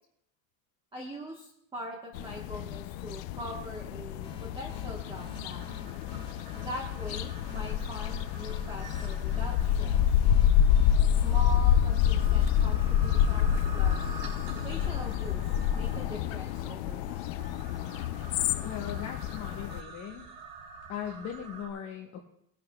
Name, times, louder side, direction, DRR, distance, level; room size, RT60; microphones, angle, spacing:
voice 1, 0.9-5.6 6.5-10.0 11.1-14.0 14.6-15.4 15.7-17.4, equal, 15° right, -1 dB, 1.2 m, -42 dB
sound 1, 2.1-19.8, left 10 dB, 80° left, 0.7 m, -28 dB
sound 2, 4.2-12.6, equal, 15° left, 1.8 m, -51 dB
sound 3, 5.0-21.7, right 3 dB, 75° right, 4.5 m, -48 dB
voice 2, 18.6-20.3 20.9-22.2, left 9 dB, 45° left, 0 dB, 1.1 m, -39 dB
20.5 x 11.0 x 2.3 m, 0.75 s
cardioid pair, 155°, 39 cm